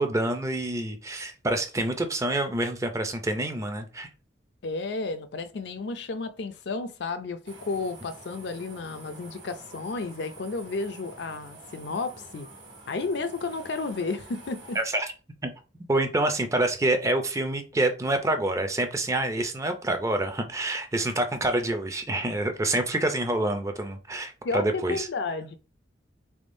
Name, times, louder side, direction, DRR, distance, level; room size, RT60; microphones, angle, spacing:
voice 1, 0.0-4.1 14.8-15.1 15.4-15.5 15.9-25.1, right 2 dB, 15° right, 0.4 m, -27 dB
voice 2, 4.6-12.5 12.9-14.8 24.4-25.6, left 3 dB, 60° left, 0.4 m, -32 dB
sound 1, 7.4-14.8, right 2 dB, 85° right, 1.3 m, -48 dB
3.5 x 3.5 x 2.6 m
head